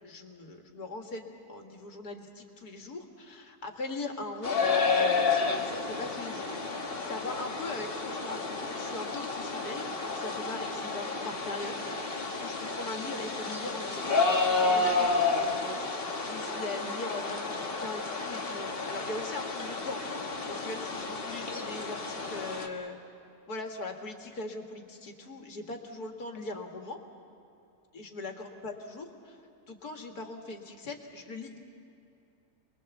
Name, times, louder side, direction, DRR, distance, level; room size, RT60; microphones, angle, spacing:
voice 1, 0.0-4.8 5.3-14.1 14.7-15.8 16.2-23.0 23.5-27.0 27.9-29.4 29.7-31.6, left 2 dB, 70° left, 3 dB, 2.4 m, -40 dB
sound 1, 4.4-22.7, left 3 dB, 35° left, 1.6 m, -31 dB
27.5 x 21.5 x 7.2 m, 2.8 s
omnidirectional pair, 1.7 m